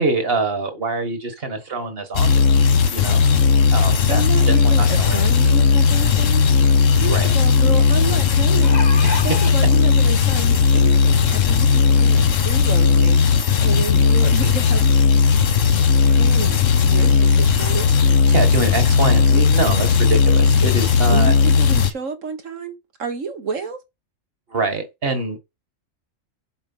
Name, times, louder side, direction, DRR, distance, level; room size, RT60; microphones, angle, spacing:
voice 1, 0.0-2.6 2.9-3.2 3.7-5.2 7.1-7.3 9.0-9.2 18.3-21.3 24.5-25.4, right 3 dB, 50° right, 1.9 m, -24 dB
sound 1, 2.1-21.9, left 5 dB, 75° left, 1.3 m, -16 dB
voice 2, 4.1-14.8 16.1-17.9 21.1-23.8, right 4 dB, 80° right, 1.9 m, -30 dB
sound 2, 8.6-9.5 10.4-10.5 10.9-11.0, left 3 dB, 35° left, 1.0 m, -29 dB
7.2 x 4.9 x 5.5 m
omnidirectional pair, 1.3 m